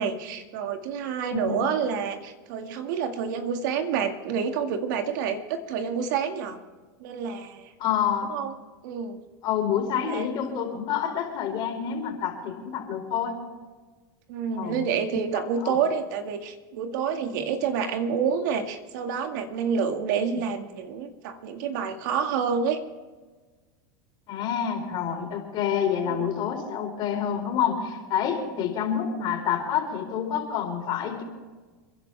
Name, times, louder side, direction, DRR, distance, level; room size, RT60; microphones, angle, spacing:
voice 1, 0.0-6.6 7.0-7.7 8.3-8.6 8.8-9.2 10.0-10.3 14.3-22.8 26.1-26.3, right 6 dB, 70° right, 6 dB, 2.0 m, -28 dB
voice 2, 7.8-8.3 9.4-13.4 14.6-14.8 15.3-15.8 20.3-20.4 24.3-31.2, left 8 dB, 45° left, 3 dB, 4.2 m, -28 dB
30.0 x 11.0 x 3.5 m, 1.3 s
supercardioid pair, 120°, 11 cm